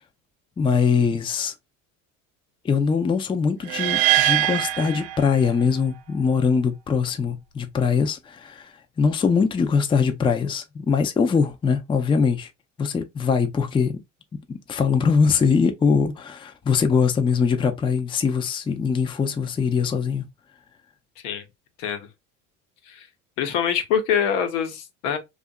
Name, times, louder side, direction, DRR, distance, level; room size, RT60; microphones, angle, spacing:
voice 1, 0.6-1.5 2.6-12.5 12.8-14.0 14.5-20.2, left 5 dB, 15° left, 0.4 m, -22 dB
sound 1, 3.7-5.8, right 15 dB, 75° right, 0.5 m, -23 dB
voice 2, 23.4-25.2, left 8 dB, 80° left, 0.9 m, -24 dB
2.7 x 2.4 x 2.2 m
supercardioid pair, 90°, 37 cm